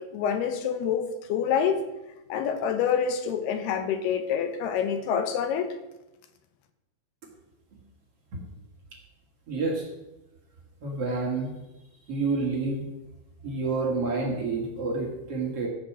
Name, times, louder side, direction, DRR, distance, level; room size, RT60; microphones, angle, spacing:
voice 1, 0.0-1.8 2.3-5.7, left 7 dB, 85° left, 8 dB, 3.1 m, -27 dB
voice 2, 9.5-9.9 10.8-11.5 12.1-12.9 13.4-15.7, right 3 dB, 45° right, -1 dB, 2.7 m, -28 dB
14.0 x 6.6 x 7.5 m, 0.97 s
omnidirectional pair, 4.5 m